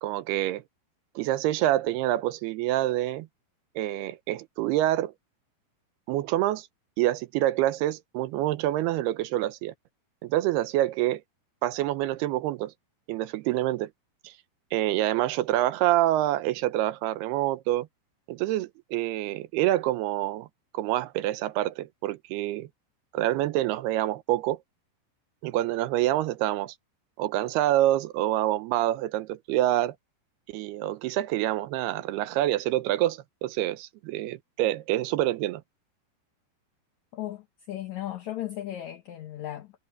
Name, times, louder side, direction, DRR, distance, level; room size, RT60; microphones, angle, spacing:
voice 1, 0.0-0.6 1.2-3.3 3.8-5.1 6.1-6.7 7.0-9.7 10.2-11.2 11.6-12.7 13.1-13.9 14.2-14.3 14.7-17.9 18.3-20.5 20.7-22.7 23.1-24.6 25.4-26.7 27.2-29.9 30.5-35.6, right 14 dB, 80° right, 2.8 m, -26 dB
voice 2, 37.1-39.7, left 13 dB, 75° left, 1.7 m, -36 dB
omnidirectional pair, 4.7 m